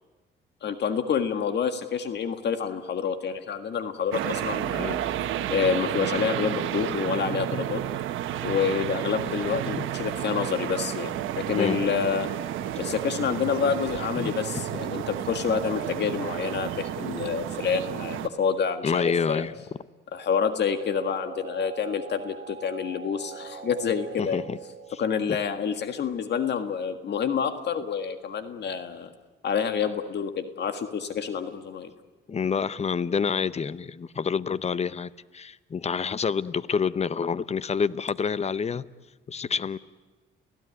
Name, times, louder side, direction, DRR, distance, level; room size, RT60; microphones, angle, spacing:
voice 1, 0.6-4.9 5.5-7.8 8.4-12.3 12.8-19.4 20.1-24.4 25.0-29.1 29.4-31.9, left 6 dB, 60° left, 8 dB, 1.6 m, -28 dB
sound 1, 4.1-18.3, right 11 dB, 85° right, 1.2 m, -31 dB
voice 2, 18.8-19.5 24.2-24.6 24.9-25.0 25.3-25.4 32.3-38.8 39.3-39.8, left 6 dB, 35° left, 17 dB, 0.8 m, -28 dB
sound 2, 20.1-25.1, right 6 dB, 45° right, 3.5 m, -42 dB
29.5 x 16.5 x 9.6 m, 1.3 s
cardioid pair, 90°, 20 cm